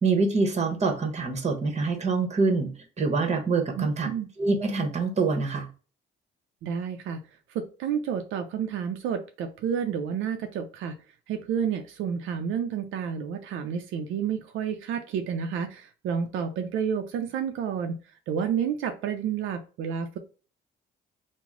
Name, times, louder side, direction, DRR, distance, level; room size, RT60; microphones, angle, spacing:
voice 1, 0.0-2.7 3.0-4.1 4.4-5.7, right 4 dB, 35° right, 5 dB, 1.0 m, -25 dB
voice 2, 3.8-4.3 6.6-7.2 7.5-11.0 11.3-18.0 18.3-20.2, right 7 dB, 80° right, 5 dB, 0.4 m, -30 dB
3.0 x 2.0 x 3.6 m, 0.36 s
cardioid pair, 90°, 20 cm